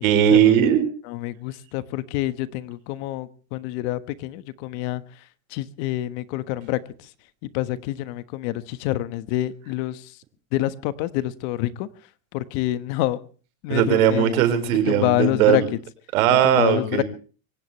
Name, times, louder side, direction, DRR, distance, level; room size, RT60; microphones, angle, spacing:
voice 1, 0.0-0.9 13.7-15.7 16.1-17.0, right 9 dB, 80° right, 4.9 m, -18 dB
voice 2, 1.0-5.2 5.5-7.1 7.4-10.2 10.5-11.9 12.3-13.2 13.6-14.3 14.9-15.6 16.4-17.0, left 15 dB, 55° left, 1.4 m, -27 dB
23.5 x 17.5 x 3.3 m
supercardioid pair, 160°, 41 cm